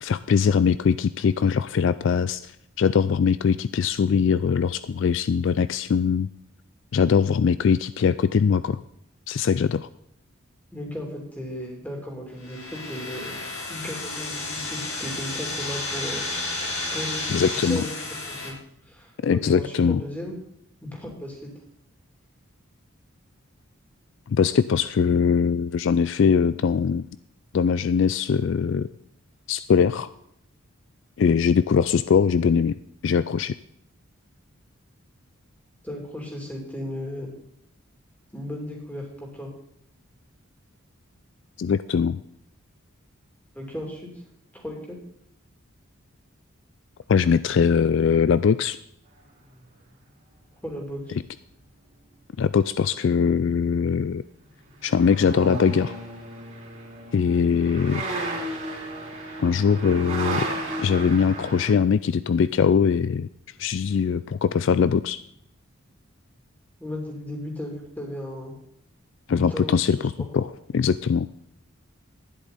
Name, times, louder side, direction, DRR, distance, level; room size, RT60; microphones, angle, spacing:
voice 1, 0.0-2.5 2.8-6.3 6.9-8.8 9.3-9.9 17.3-17.8 19.2-20.0 24.3-27.0 27.5-28.9 29.5-30.1 31.2-32.8 33.0-33.5 41.6-42.2 47.1-48.8 52.4-54.2 54.8-55.9 57.1-58.0 59.4-60.5 60.8-63.3 63.6-65.2 69.3-71.3, left 6 dB, 60° left, 15 dB, 0.3 m, -21 dB
voice 2, 10.7-13.4 13.7-16.3 16.9-17.2 17.5-17.9 18.2-18.6 18.8-20.4 20.8-21.5 35.8-37.3 38.3-39.5 43.5-44.1 44.5-45.0 50.6-51.2 66.8-68.5 69.3-70.1, left 1 dB, 5° left, -1 dB, 2.8 m, -35 dB
sound 1, 12.4-18.5, left 2 dB, 75° left, 4.2 m, -32 dB
sound 2, 50.7-50.8 54.7-61.7, right 2 dB, 35° right, 3.1 m, -33 dB
11.5 x 10.5 x 4.1 m, 0.76 s
head